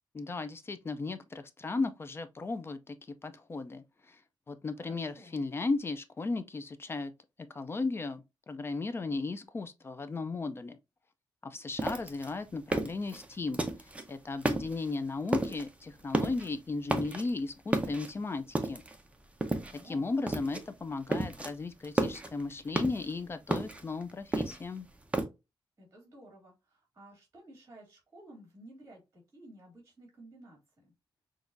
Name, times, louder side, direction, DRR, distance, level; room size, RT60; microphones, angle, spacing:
voice 1, 0.1-3.0 3.2-4.2 4.5-7.1 7.4-10.8 11.4-18.8 19.7-24.9, left 3 dB, 25° left, 0.4 m, -36 dB
voice 2, 4.8-5.4 19.6-20.1 25.8-30.9, right 1 dB, 30° right, 2.6 m, -54 dB
sound 1, 11.8-14.1 14.4-15.0 15.3-15.7 16.0-16.5 16.8-17.4 17.7-19.0 19.4-19.9 20.3-20.7 20.9-21.5 21.8-23.1 23.5-25.3, right 2 dB, 15° right, 0.6 m, -32 dB
6.0 x 2.4 x 2.5 m
wide cardioid pair, 135°, 9 cm